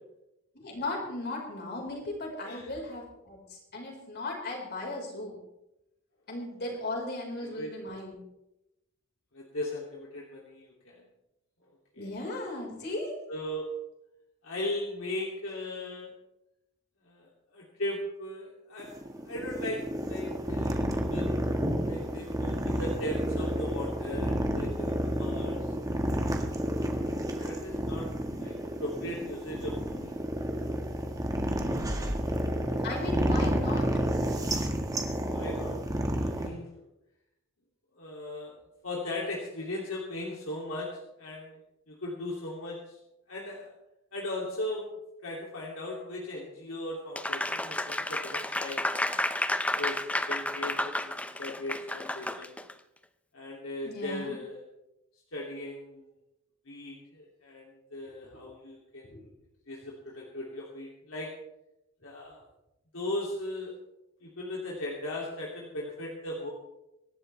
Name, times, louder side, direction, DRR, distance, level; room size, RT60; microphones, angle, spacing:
voice 1, 0.5-5.4 6.3-8.2 12.0-13.1 32.8-35.1 53.8-54.3 59.1-59.2, left 2 dB, 50° left, 0 dB, 4.8 m, -37 dB
voice 2, 9.3-11.0 12.0-12.1 13.3-13.7 14.4-16.1 17.0-18.9 19.2-21.4 21.9-25.6 25.9-26.0 27.4-28.5 28.8-30.1 31.8-32.5 35.3-36.7 38.0-38.5 38.8-40.9 41.2-41.6 41.9-43.0 43.3-43.7 44.1-44.9 45.2-48.8 49.8-50.0 50.3-52.5 53.3-54.6 55.3-56.0 56.7-59.1 59.7-61.3 62.0-62.4 62.9-63.7 64.2-66.5, left 1 dB, 75° left, -3 dB, 2.8 m, -38 dB
sound 1, 18.8-36.5, equal, 15° right, 1.7 m, -30 dB
Applause, 47.2-52.7, left 1 dB, 5° left, 0.6 m, -31 dB
25.0 x 11.5 x 3.4 m, 0.89 s
head